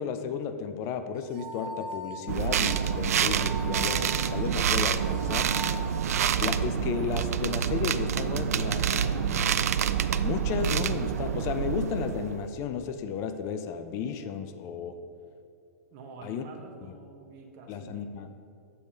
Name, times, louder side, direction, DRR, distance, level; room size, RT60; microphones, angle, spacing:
voice 1, 0.0-5.5 6.4-9.5 10.2-15.0 16.2-16.4 17.7-18.3, left 7 dB, 35° left, 9 dB, 0.5 m, -33 dB
sound 1, 1.2-7.0, equal, 10° right, 1.2 m, -41 dB
sound 2, 2.3-12.5, right 8 dB, 70° right, 0.4 m, -27 dB
voice 2, 15.9-18.1, right 3 dB, 40° right, 1 dB, 1.0 m, -47 dB
7.0 x 4.8 x 6.7 m, 2.4 s
hypercardioid pair, 110°, 9 cm